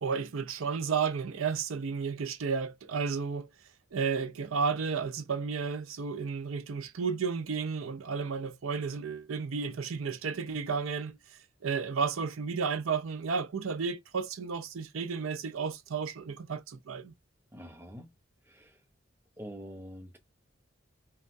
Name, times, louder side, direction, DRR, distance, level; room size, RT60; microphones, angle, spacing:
voice 1, 0.0-3.5 3.9-11.1 11.6-17.1, right 5 dB, 85° right, 0.5 m, -32 dB
voice 2, 17.5-18.1 18.5-18.8 19.4-20.2, equal, 10° right, 0.7 m, -45 dB
2.9 x 2.3 x 2.5 m
head